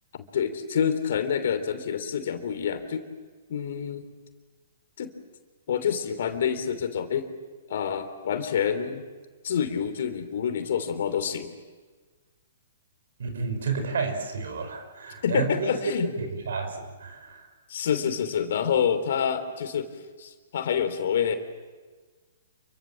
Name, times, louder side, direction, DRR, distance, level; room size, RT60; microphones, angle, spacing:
voice 1, 0.3-3.0 3.5-4.0 5.0-5.1 5.7-7.3 7.7-9.0 9.4-11.5 15.2-16.1 17.7-19.9 20.2-21.4, left 8 dB, 60° left, 9 dB, 3.1 m, -27 dB
voice 2, 13.2-15.8 16.2-17.5, right 4 dB, 65° right, 7 dB, 5.5 m, -31 dB
28.5 x 24.0 x 7.5 m, 1.4 s
figure-of-eight pair, 120°, 0 cm